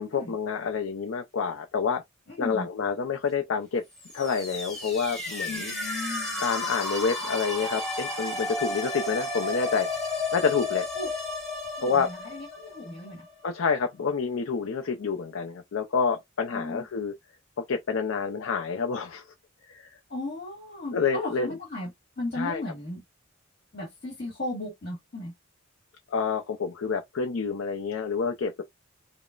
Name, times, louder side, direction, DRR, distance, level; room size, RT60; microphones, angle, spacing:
voice 1, 0.0-2.0 2.4-3.8 4.1-5.7 6.4-9.9 10.3-10.9 11.8-12.1 13.4-17.1 17.6-19.2 19.7-19.9 20.9-21.5 22.3-22.6 26.1-28.6, left 5 dB, 75° left, 0.5 m, -28 dB
voice 2, 2.3-2.7 5.5-6.4 10.9-11.1 11.8-13.2 16.5-16.8 20.1-21.9 22.2-23.0 23.7-25.3, left 2 dB, 50° left, 1.6 m, -36 dB
sound 1, 4.0-13.7, left 2 dB, ahead, 1.3 m, -33 dB
5.0 x 2.1 x 2.4 m
head